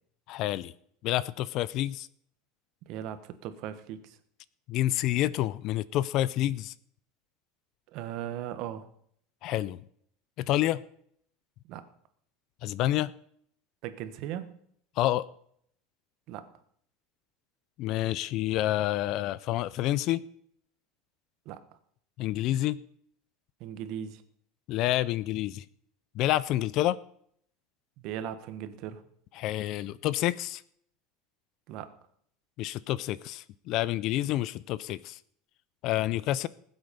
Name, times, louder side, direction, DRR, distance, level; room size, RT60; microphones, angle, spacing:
voice 1, 0.3-0.7 1.0-2.1 4.7-6.7 9.4-9.8 10.4-10.8 12.6-13.1 15.0-15.3 17.8-20.2 22.2-22.8 24.7-25.6 26.1-27.0 29.4-30.6 32.6-35.2 35.8-36.5, left 14 dB, 45° left, 0.4 m, -28 dB
voice 2, 2.9-4.2 7.9-8.9 11.7-11.9 13.8-14.5 16.3-16.5 21.4-21.6 23.6-24.2 28.0-29.0 31.7-31.9, right 10 dB, 50° right, 1.3 m, -38 dB
19.5 x 8.0 x 5.3 m
supercardioid pair, 160°, 0 cm